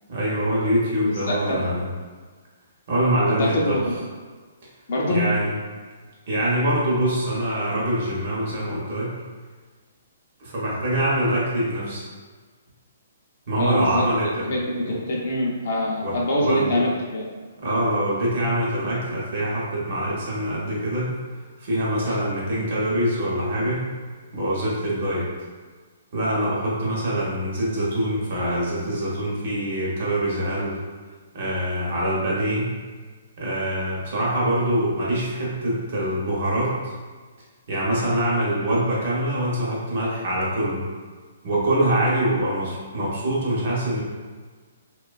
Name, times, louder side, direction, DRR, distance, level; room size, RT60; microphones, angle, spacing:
voice 1, 0.1-1.8 2.9-3.8 5.1-5.5 6.3-9.1 10.4-12.0 13.5-14.5 14.9-15.0 16.0-16.2 16.4-16.8 17.6-21.2 21.6-23.9 24.3-25.3 26.1-30.8 31.3-32.7 33.4-36.9 37.7-40.9 41.4-44.0, right 1 dB, 40° right, -6 dB, 0.7 m, -24 dB
voice 2, 1.0-1.7 3.3-3.9 4.9-5.3 13.6-14.1 14.5-17.3 22.0-22.2, left 1 dB, 45° left, -3 dB, 0.4 m, -25 dB
2.5 x 2.2 x 2.3 m, 1.4 s
hypercardioid pair, 175°, 0 cm